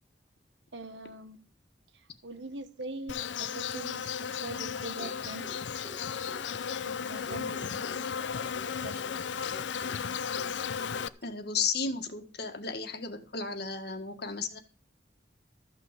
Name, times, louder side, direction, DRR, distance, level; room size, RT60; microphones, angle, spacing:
voice 1, 0.7-1.5 1.9-5.4 6.9-8.2 8.8-9.0, right 2 dB, 80° right, 1.4 m, -43 dB
Insect, 3.1-11.1, left 7 dB, 80° left, 0.6 m, -35 dB
sound 1, 5.0-11.3, equal, 10° right, 1.8 m, -52 dB
voice 2, 11.2-14.6, left 5 dB, 60° left, 1.7 m, -34 dB
13.5 x 6.2 x 7.4 m
head